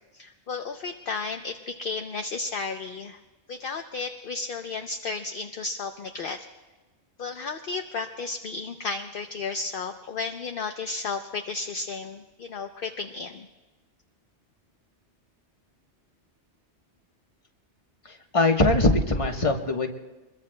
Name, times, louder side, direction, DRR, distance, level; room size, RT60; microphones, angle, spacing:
voice 1, 0.1-3.2 3.5-6.4 7.2-13.5, left 4 dB, 55° left, 5 dB, 0.8 m, -33 dB
voice 2, 18.1-19.9, left 2 dB, 30° left, 3 dB, 1.2 m, -22 dB
25.5 x 22.0 x 2.2 m, 1.2 s
omnidirectional pair, 1.2 m